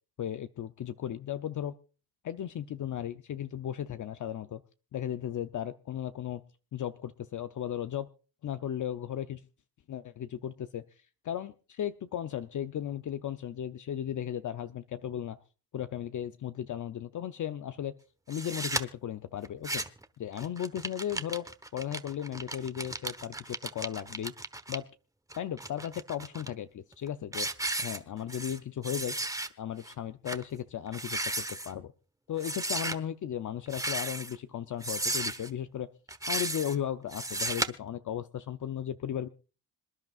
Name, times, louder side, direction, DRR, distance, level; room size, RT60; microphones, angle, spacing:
voice 1, 0.2-1.7 2.2-4.6 4.9-6.4 6.7-8.1 8.4-9.4 9.9-10.8 11.2-15.4 15.7-17.9 18.3-19.9 20.2-24.3 24.7-24.8 25.3-27.5 27.8-29.2 29.6-31.9 32.3-35.9 36.3-39.3, left 10 dB, 50° left, 10 dB, 0.7 m, -36 dB
sound 1, 18.3-18.8 19.4-20.0 20.4-24.8 25.3-26.5 26.9-27.1 27.3-28.6 28.8-29.5 29.8-29.9 30.3-30.4 30.9-31.7 32.4-33.0 33.7-34.4 34.8-35.5 36.1-36.8 37.1-37.7, right 2 dB, 10° right, 1.1 m, -34 dB
26.5 x 10.5 x 2.4 m, 0.35 s
cardioid pair, 80°, 38 cm